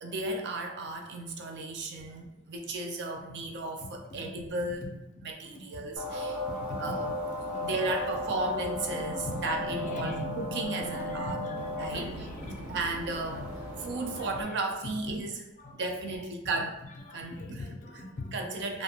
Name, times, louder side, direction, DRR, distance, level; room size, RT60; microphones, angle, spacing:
voice 1, 0.0-4.9 5.2-6.4 6.8-11.4 11.8-12.3 12.7-13.5 13.8-15.4 15.7-16.8 17.1-17.6 18.3-18.8, right 2 dB, 55° right, 3 dB, 0.4 m, -34 dB
sound 1, 6.0-14.4, left 1 dB, 80° right, 0.8 m, -35 dB
voice 2, 9.8-10.2 10.8-12.6 13.4-13.5 13.9-14.6 15.6-16.2 17.1-18.3 18.6-18.8, left 3 dB, 35° left, 2 dB, 0.4 m, -43 dB
2.5 x 2.1 x 2.8 m, 0.97 s
head